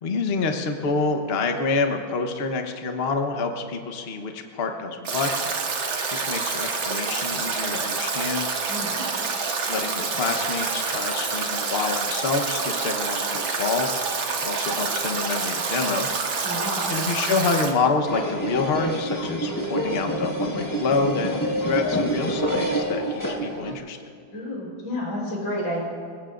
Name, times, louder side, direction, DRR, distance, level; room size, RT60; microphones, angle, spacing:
voice 1, 0.0-5.4 6.1-8.5 9.7-14.0 14.4-16.4 16.9-24.0, left 4 dB, 40° left, 4 dB, 1.0 m, -27 dB
Stream / Drip / Trickle dribble, 5.1-17.7, right 4 dB, 80° right, 2.2 m, -27 dB
voice 2, 8.7-9.0 16.4-16.9 24.3-25.8, left 1 dB, 85° left, -3 dB, 5.0 m, -30 dB
sound 1, 18.1-23.7, right 1 dB, 10° left, 1.1 m, -27 dB
28.5 x 17.5 x 2.6 m, 2.2 s
omnidirectional pair, 2.1 m